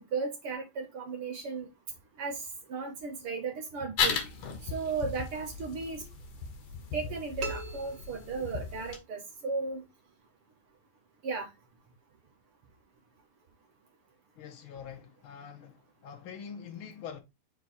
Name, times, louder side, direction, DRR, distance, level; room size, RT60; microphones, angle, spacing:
voice 1, 0.0-1.7 2.2-2.4 2.7-4.2 4.6-6.0 6.9-9.8 11.2-11.5, right 4 dB, 55° right, 1.7 m, -35 dB
sound 1, 4.0-9.0, left 5 dB, 60° left, 2.0 m, -35 dB
sound 2, 7.4-9.0, right 4 dB, 75° right, 1.2 m, -42 dB
voice 2, 14.4-17.2, left 7 dB, 80° left, 1.1 m, -44 dB
5.3 x 4.7 x 4.0 m
omnidirectional pair, 3.8 m